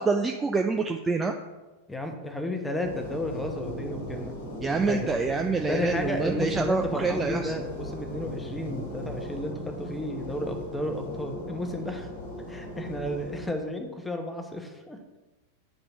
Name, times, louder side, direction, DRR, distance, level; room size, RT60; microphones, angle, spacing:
voice 1, 0.0-1.3 4.6-7.5, right 4 dB, 15° right, 4 dB, 0.4 m, -26 dB
voice 2, 1.9-4.4 4.7-5.1 5.7-12.1 12.5-15.0, left 1 dB, 5° left, 4 dB, 1.0 m, -33 dB
sound 1, 2.8-13.5, equal, 60° left, 1.3 m, -38 dB
8.8 x 4.3 x 4.0 m, 1.2 s
figure-of-eight pair, 90°, 0 cm